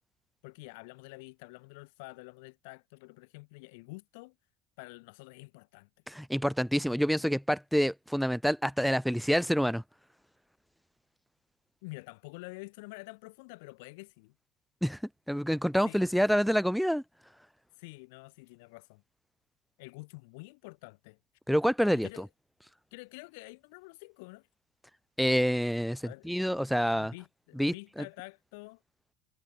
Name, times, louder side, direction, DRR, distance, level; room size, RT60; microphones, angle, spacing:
voice 1, 0.4-4.3 4.8-5.9 11.8-14.3 15.8-16.1 17.8-19.0 19.8-21.2 21.9-22.3 22.9-24.5 26.0-26.3 26.9-28.8, left 28 dB, 60° left, 4.7 m, -48 dB
voice 2, 6.1-9.8 14.8-15.0 15.3-17.0 21.5-22.1 25.2-27.1 27.6-28.0, equal, ahead, 1.2 m, -27 dB
figure-of-eight pair, 70°, 0 cm